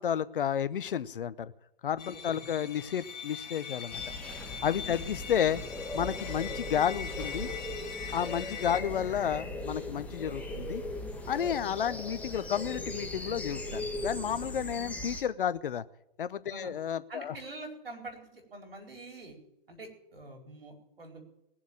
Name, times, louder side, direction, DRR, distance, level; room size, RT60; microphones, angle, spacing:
voice 1, 0.0-1.5 1.8-4.0 4.6-5.6 5.9-7.5 8.1-10.8 11.3-15.8 16.2-17.3, left 9 dB, 65° left, 16 dB, 0.9 m, -31 dB
sound 1, 2.0-8.8, left 7 dB, 45° left, 2.6 m, -42 dB
sound 2, 3.9-15.2, left 1 dB, 5° left, 1.4 m, -39 dB
voice 2, 17.1-19.4 19.7-21.2, right 2 dB, 75° right, 2 dB, 4.6 m, -45 dB
20.0 x 7.3 x 7.1 m, 0.86 s
figure-of-eight pair, 125°, 29 cm